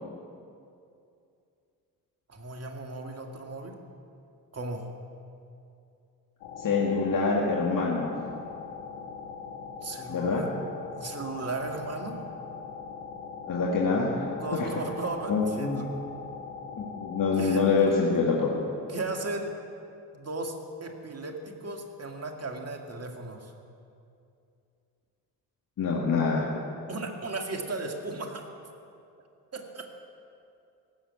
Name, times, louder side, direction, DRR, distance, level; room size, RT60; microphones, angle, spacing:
voice 1, 2.3-3.8 4.5-4.9 9.8-10.5 10.9-12.2 14.3-16.0 17.4-17.7 18.9-19.5 20.1-23.5 26.9-28.5 29.5-29.9, right 2 dB, 30° right, 3 dB, 2.1 m, -36 dB
sound 1, 6.4-17.7, left 5 dB, 70° left, 1.9 m, -41 dB
voice 2, 6.6-8.1 10.1-10.4 13.5-14.2 14.5-14.7 15.3-15.8 16.8-18.6 25.8-26.5, left 4 dB, 40° left, -3 dB, 2.0 m, -25 dB
17.0 x 7.2 x 8.4 m, 2.5 s
figure-of-eight pair, 45°, 50 cm